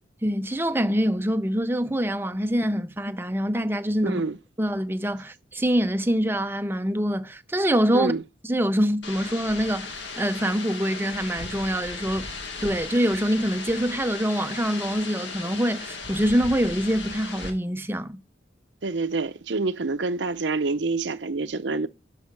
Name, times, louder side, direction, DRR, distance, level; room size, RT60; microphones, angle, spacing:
voice 1, 0.2-4.2 4.6-8.1 8.4-12.3 12.6-18.2, equal, 10° right, 0.6 m, -25 dB
voice 2, 4.0-4.4 7.9-8.2 18.8-21.9, right 3 dB, 80° right, 0.8 m, -27 dB
sound 1, 9.0-17.5, left 4 dB, 85° left, 1.9 m, -36 dB
12.0 x 5.7 x 5.9 m
head